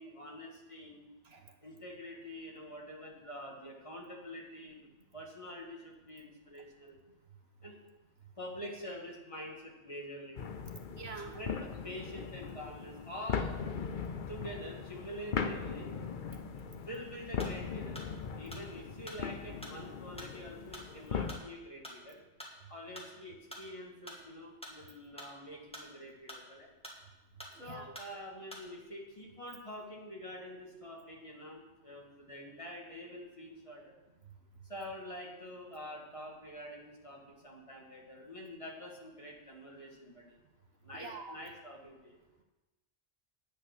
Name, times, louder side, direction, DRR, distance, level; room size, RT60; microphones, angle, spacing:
voice 1, 0.0-1.1 1.6-4.8 5.1-7.0 7.6-7.8 8.4-10.4 11.3-13.6 14.3-15.9 16.7-18.0 18.4-22.2 22.7-26.7 27.6-33.9 34.7-40.4 40.8-42.2, equal, 25° left, -2 dB, 2.1 m, -46 dB
sound 1, 10.4-21.4, left 6 dB, 50° left, 0.8 m, -39 dB
voice 2, 10.9-11.4 16.3-16.4 27.5-27.9 34.2-34.3 40.9-41.4, right 4 dB, 60° right, 4 dB, 1.3 m, -46 dB
sound 2, 17.4-28.9, equal, 5° left, 2.3 m, -49 dB
10.0 x 9.2 x 6.1 m, 1.1 s
omnidirectional pair, 1.2 m